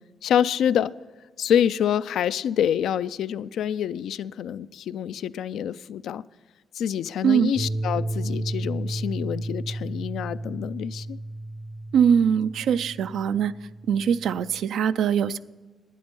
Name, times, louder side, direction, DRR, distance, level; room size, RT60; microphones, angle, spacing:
voice 1, 0.2-0.9 1.4-6.2 6.8-11.2, left 9 dB, 85° left, 15 dB, 0.3 m, -26 dB
sound 1, 7.6-14.6, right 1 dB, 45° right, 0.7 m, -33 dB
voice 2, 11.9-13.5 13.9-15.4, right 8 dB, 85° right, 14 dB, 0.4 m, -22 dB
11.5 x 9.6 x 5.3 m, 1.3 s
cardioid pair, 85°, 0 cm